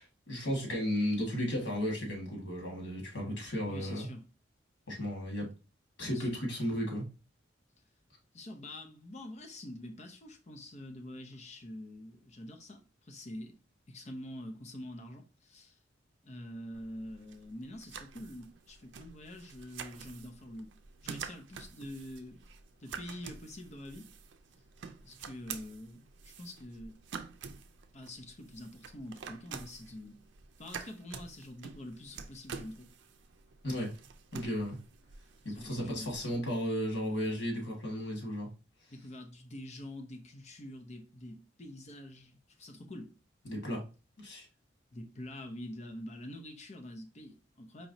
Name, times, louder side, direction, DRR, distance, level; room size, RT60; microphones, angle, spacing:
voice 1, 0.0-4.1 4.9-5.5 6.0-7.1 33.6-33.9 34.3-34.8 35.4-38.5 43.4-43.8 44.2-44.5, equal, 90° left, 1.6 m, -34 dB
voice 2, 3.6-4.2 6.1-6.4 8.3-13.5 13.9-15.8 16.2-20.7 21.0-22.4 22.8-24.1 25.0-27.0 27.9-30.2 30.6-32.9 35.5-36.1 38.9-43.1 44.9-47.9, left 1 dB, 40° left, 0.7 m, -46 dB
sound 1, 16.7-36.3, right 6 dB, 80° right, 0.5 m, -48 dB
4.6 x 3.0 x 2.7 m
head